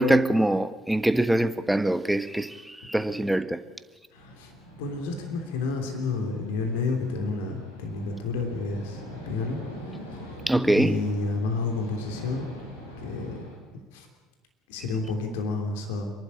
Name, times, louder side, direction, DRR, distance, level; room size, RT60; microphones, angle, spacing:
voice 1, 0.0-3.6 10.5-11.0, right 1 dB, 5° right, 1.2 m, -23 dB
sound 1, 4.1-13.6, equal, 85° left, 4.4 m, -44 dB
voice 2, 4.1-4.5 4.8-9.6 10.7-12.5 13.0-13.5 13.9-14.1 14.7-16.1, left 3 dB, 70° left, 3.1 m, -30 dB
26.5 x 11.5 x 9.9 m
hypercardioid pair, 65°, 0 cm